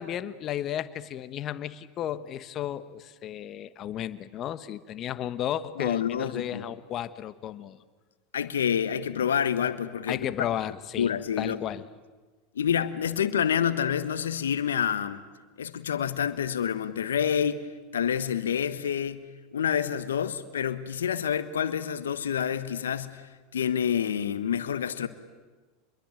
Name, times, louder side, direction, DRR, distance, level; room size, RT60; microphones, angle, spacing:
voice 1, 0.0-7.8 10.1-11.1 11.4-11.9, left 11 dB, 40° left, 14 dB, 1.3 m, -33 dB
voice 2, 5.8-6.6 8.3-10.3 11.0-11.6 12.5-15.2 15.6-17.6 17.9-19.2 19.5-23.2 23.5-25.1, left 8 dB, 80° left, 12 dB, 1.3 m, -28 dB
27.5 x 22.0 x 9.1 m, 1.3 s
hypercardioid pair, 90°, 0 cm